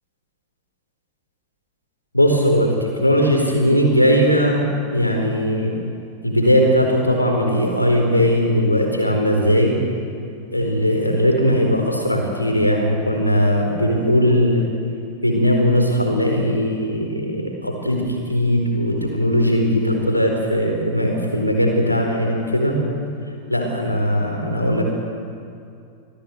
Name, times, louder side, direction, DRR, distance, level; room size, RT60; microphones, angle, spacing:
voice 1, 2.1-5.7 6.2-9.7 10.5-14.6 15.2-22.8 23.5-24.8, equal, 90° left, 2 dB, 4.4 m, -19 dB
26.5 x 17.0 x 7.9 m, 2.4 s
figure-of-eight pair, 90°, 0 cm